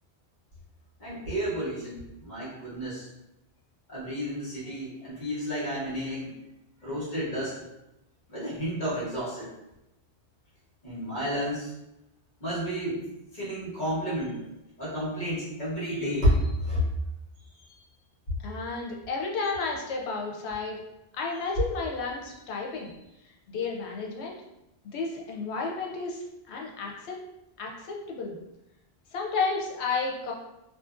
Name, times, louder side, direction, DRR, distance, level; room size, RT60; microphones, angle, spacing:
voice 1, 1.0-3.1 3.9-6.4 6.8-7.6 8.3-9.5 10.8-11.7 12.4-16.9, equal, 45° left, -9 dB, 1.1 m, -31 dB
voice 2, 18.4-20.8 21.1-22.9 23.5-24.4 24.9-27.2 27.6-28.3 29.1-30.3, left 4 dB, 85° left, 0 dB, 0.9 m, -32 dB
2.6 x 2.5 x 2.4 m, 0.91 s
omnidirectional pair, 1.1 m